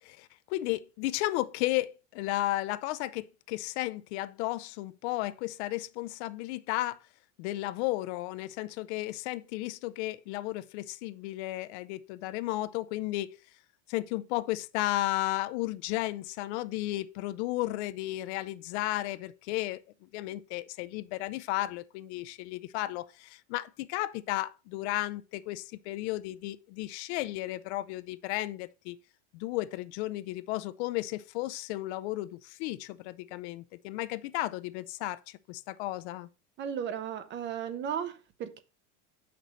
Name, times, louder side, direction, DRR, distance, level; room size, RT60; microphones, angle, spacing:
voice 1, 0.0-7.0 7.4-13.4 13.9-29.0 29.3-36.3, left 17 dB, 65° left, 0.5 m, -34 dB
voice 2, 36.6-38.6, right 8 dB, 30° right, 0.6 m, -35 dB
6.8 x 5.9 x 3.1 m
supercardioid pair, 135°, 36 cm